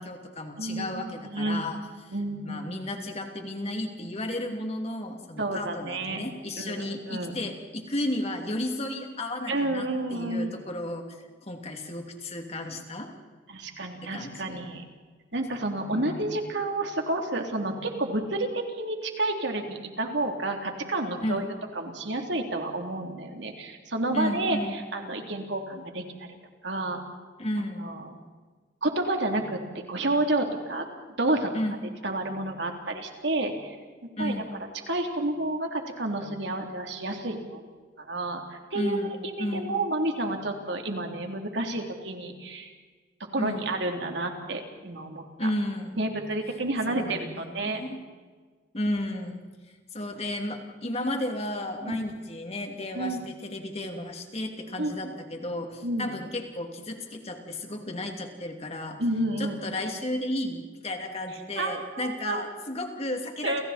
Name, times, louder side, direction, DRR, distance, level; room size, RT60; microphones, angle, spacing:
voice 1, 0.0-1.8 2.1-2.2 2.4-11.1 11.4-13.1 14.0-14.6 15.9-16.2 21.2-21.5 24.1-24.8 27.4-27.9 31.5-31.9 34.2-34.5 38.7-39.1 39.4-39.8 43.4-43.7 45.4-46.0 46.9-48.0 48.7-49.4 49.9-59.0 59.4-63.6, left 1 dB, 35° left, 3 dB, 2.9 m, -33 dB
voice 2, 0.6-1.7 2.1-2.6 5.4-6.2 6.5-7.3 9.5-10.6 13.5-14.8 15.3-26.3 26.6-27.0 27.8-28.1 28.8-30.9 31.2-31.5 32.0-33.7 34.2-34.3 34.9-37.6 38.0-42.7 43.3-45.5 45.9-47.8 51.9-52.0 52.9-53.2 54.8-55.1 55.8-56.1 59.0-59.6 61.5-62.4 63.4-63.6, right 2 dB, 65° right, 3 dB, 3.4 m, -30 dB
30.0 x 29.0 x 4.4 m, 1.5 s
head